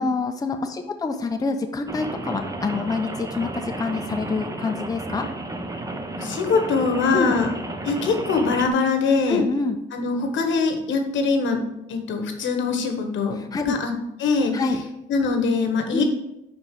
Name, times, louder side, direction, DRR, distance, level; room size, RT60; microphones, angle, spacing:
voice 1, 0.0-5.3 7.1-7.3 9.3-9.8 13.4-13.8 14.5-14.8 15.9-16.0, left 3 dB, 20° left, 5 dB, 0.6 m, -26 dB
Rain, 1.9-8.7, right 2 dB, 15° right, 0.7 m, -32 dB
voice 2, 6.2-7.5 7.8-9.4 9.9-11.6 11.9-13.9 14.2-14.5 15.1-16.0, left 4 dB, 75° left, 5 dB, 1.1 m, -22 dB
5.2 x 4.6 x 5.0 m, 0.86 s
cardioid pair, 90°, 20 cm